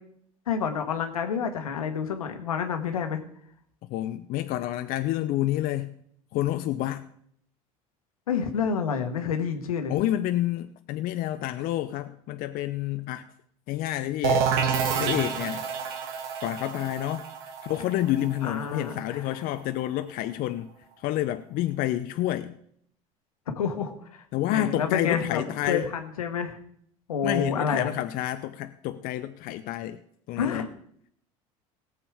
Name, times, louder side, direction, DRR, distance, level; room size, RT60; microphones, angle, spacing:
voice 1, 0.5-3.2 8.3-9.9 18.4-19.4 23.5-25.4 25.7-26.6 27.1-27.9 30.4-30.7, left 6 dB, 85° left, 1.4 m, -29 dB
voice 2, 3.9-6.0 6.3-7.1 9.9-13.3 13.7-14.5 15.0-15.7 16.4-17.3 17.6-20.7 21.0-22.6 24.3-25.9 27.2-30.0 30.3-30.7, left 14 dB, 55° left, 0.7 m, -29 dB
sound 1, 14.2-19.8, right 6 dB, 65° right, 1.8 m, -29 dB
17.5 x 7.4 x 4.9 m
hypercardioid pair, 70°, 18 cm